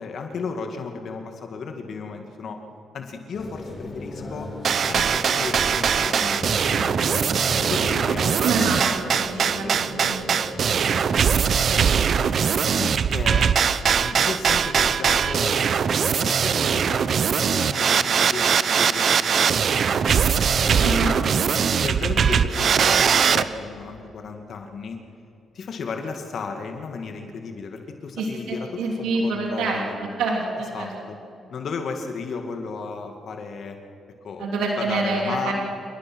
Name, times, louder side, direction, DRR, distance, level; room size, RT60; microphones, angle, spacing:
voice 1, 0.0-2.6 2.9-4.5 4.9-8.6 10.7-10.9 12.8-13.5 13.9-15.6 16.1-20.0 20.7-25.0 25.5-30.0 30.7-31.2 31.5-33.8 34.2-34.5 34.8-35.5, left 5 dB, 60° left, 4 dB, 2.0 m, -34 dB
sound 1, 3.3-11.1, left 2 dB, 40° left, 5.9 m, -37 dB
sound 2, 4.6-23.4, right 7 dB, 60° right, 0.8 m, -21 dB
voice 2, 8.4-10.8 11.1-12.4 20.8-21.1 28.2-30.9 34.4-35.5, right 3 dB, 90° right, -1 dB, 3.1 m, -28 dB
28.0 x 19.0 x 6.3 m, 2.8 s
cardioid pair, 85°, 0 cm